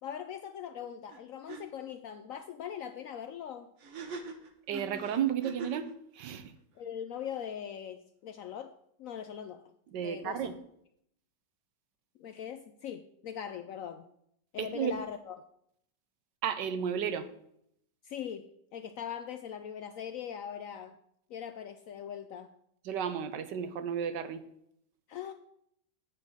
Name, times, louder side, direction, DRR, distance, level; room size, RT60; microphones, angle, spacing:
voice 1, 0.0-3.7 6.8-9.6 10.0-10.5 12.2-14.1 14.5-15.4 18.0-21.0 21.3-22.5 25.1-25.3, left 8 dB, 75° left, 9 dB, 0.7 m, -41 dB
sound 1, 1.1-1.2 1.5-1.6 3.8-5.9, right 4 dB, 50° right, 1.2 m, -42 dB
voice 2, 4.7-6.5 9.9-10.6 14.6-15.0 16.4-17.3 22.8-24.4, right 8 dB, 80° right, 11 dB, 1.4 m, -33 dB
8.9 x 5.3 x 6.1 m, 0.73 s
omnidirectional pair, 1.9 m